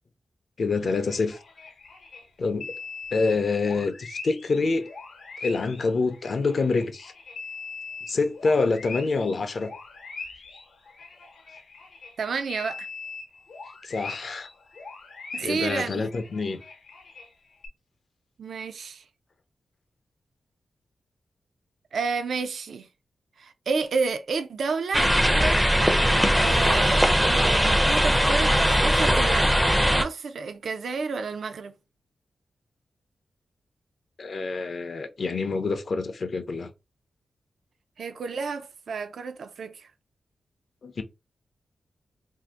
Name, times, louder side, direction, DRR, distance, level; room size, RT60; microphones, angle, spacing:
voice 1, 0.6-1.4 2.4-2.7 3.1-4.9 5.4-7.1 8.1-9.7 13.8-14.5 15.4-16.6 34.2-36.7 40.8-41.0, left 4 dB, 55° left, 0.5 m, -26 dB
sound 1, 0.7-2.2 2.6-12.1 12.5-17.3 17.6-17.7, left 4 dB, 85° left, 0.8 m, -41 dB
voice 2, 12.2-12.9 15.3-16.1 18.4-19.0 21.9-22.9 23.4-25.1 26.4-31.7 38.0-39.9, right 4 dB, 75° right, 0.4 m, -31 dB
sound 2, 24.9-30.0, equal, 5° right, 0.4 m, -20 dB
2.6 x 2.5 x 3.5 m
wide cardioid pair, 115°, 0 cm